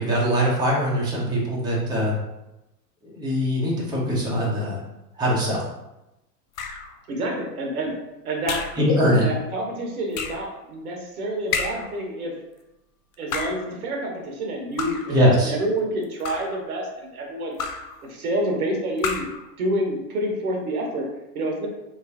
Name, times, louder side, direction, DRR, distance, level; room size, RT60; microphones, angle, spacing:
voice 1, 0.0-2.1 3.0-4.8 5.2-5.6 8.8-9.3 15.1-15.5, equal, 10° right, -6 dB, 0.9 m, -22 dB
sound 1, 6.5-7.0 8.5-8.9 10.1-10.5 11.5-12.0 13.1-13.7 14.8-15.2 16.0-16.6 17.6-18.0 19.0-19.4, left 5 dB, 55° left, 0.6 m, -30 dB
voice 2, 7.1-7.9 8.2-8.6 9.2-12.3 13.2-17.6 18.0-19.2 19.6-21.1 21.3-21.7, right 1 dB, 60° right, 1 dB, 1.0 m, -28 dB
3.7 x 3.1 x 2.7 m, 0.93 s
figure-of-eight pair, 100°, 50 cm